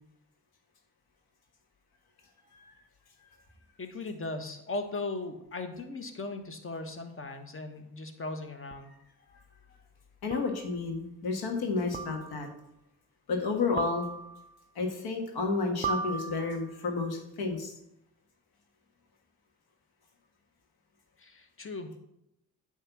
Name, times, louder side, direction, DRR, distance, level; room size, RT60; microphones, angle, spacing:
voice 1, 3.8-8.9 21.2-22.0, left 2 dB, 30° left, 7 dB, 1.2 m, -38 dB
sound 1, 8.7-8.8 10.3-10.7 11.9-12.5 13.8-14.5 15.8-16.8, right 5 dB, 20° right, 0.6 m, -36 dB
voice 2, 10.2-12.5 13.3-14.1 14.7-17.7, left 4 dB, 65° left, 2 dB, 1.5 m, -31 dB
8.8 x 3.2 x 5.9 m, 0.82 s
hypercardioid pair, 45°, 39 cm